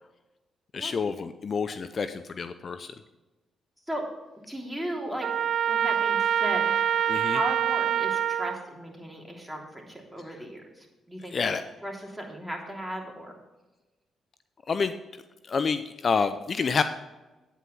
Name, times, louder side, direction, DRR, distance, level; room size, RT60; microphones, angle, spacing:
voice 1, 0.7-2.9 7.1-7.4 11.3-11.6 14.7-14.9 15.5-16.8, left 5 dB, 50° left, 11 dB, 0.5 m, -28 dB
voice 2, 4.5-11.5 11.8-13.3, right 1 dB, 5° right, 0 dB, 3.2 m, -36 dB
Trumpet, 5.2-8.6, right 9 dB, 60° right, 0.3 m, -25 dB
9.4 x 8.3 x 5.5 m, 1.1 s
hypercardioid pair, 40°, 0 cm